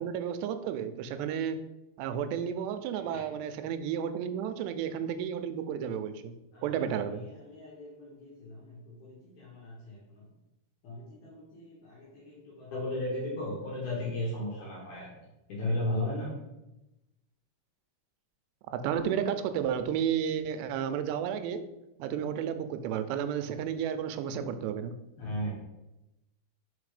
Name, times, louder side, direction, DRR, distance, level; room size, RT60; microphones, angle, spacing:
voice 1, 0.0-1.6 2.0-6.3 6.6-7.3 18.7-21.7 22.0-25.0, right 8 dB, 90° right, 10 dB, 2.7 m, -32 dB
voice 2, 6.5-10.3 10.8-15.1 15.5-16.3 25.2-25.5, left 1 dB, 65° left, -4 dB, 2.1 m, -36 dB
5.9 x 4.2 x 4.8 m, 0.94 s
omnidirectional pair, 4.8 m